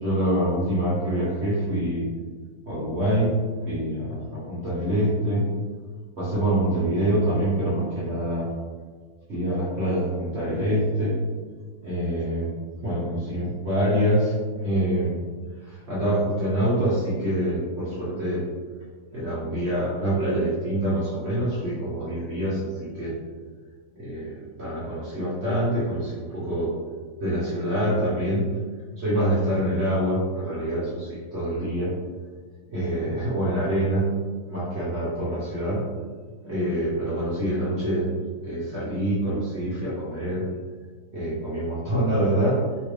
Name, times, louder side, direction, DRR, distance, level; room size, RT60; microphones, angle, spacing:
voice 1, 0.0-2.1 2.7-3.4 3.6-5.5 6.2-8.5 9.3-11.2 11.8-12.5 12.8-14.4 14.6-15.2 15.6-18.4 19.1-23.1 23.9-26.7 27.2-28.5 29.0-31.9 32.7-34.1 34.5-35.9 36.4-38.2 38.4-40.4 41.1-42.6, right 1 dB, 45° right, -9 dB, 1.0 m, -25 dB
3.1 x 2.5 x 3.2 m, 1.5 s
omnidirectional pair, 1.9 m